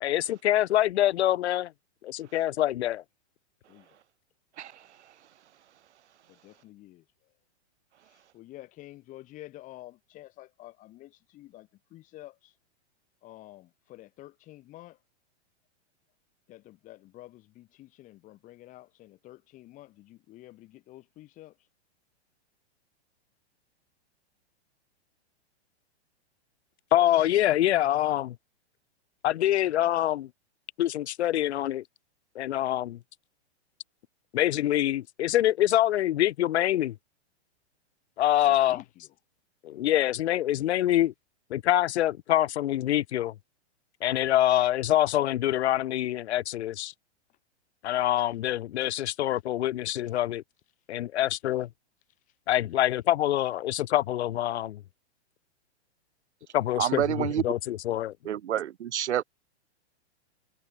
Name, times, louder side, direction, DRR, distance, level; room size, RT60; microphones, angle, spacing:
voice 1, 0.0-1.7 2.0-3.0 26.9-28.4 29.2-30.3 30.8-31.8 32.4-33.0 34.3-37.0 38.2-38.8 39.6-41.1 41.5-43.3 44.0-46.9 47.8-50.4 50.9-51.7 52.5-54.8 56.5-58.1, left 13 dB, 70° left, 0.7 m, -25 dB
voice 2, 6.3-7.0 8.0-12.6 13.2-15.0 16.5-21.7 38.4-38.9 52.3-52.4, left 16 dB, 25° left, 8.0 m, -49 dB
voice 3, 56.8-57.4 58.3-59.2, right 10 dB, 80° right, 2.1 m, -28 dB
supercardioid pair, 170°, 34 cm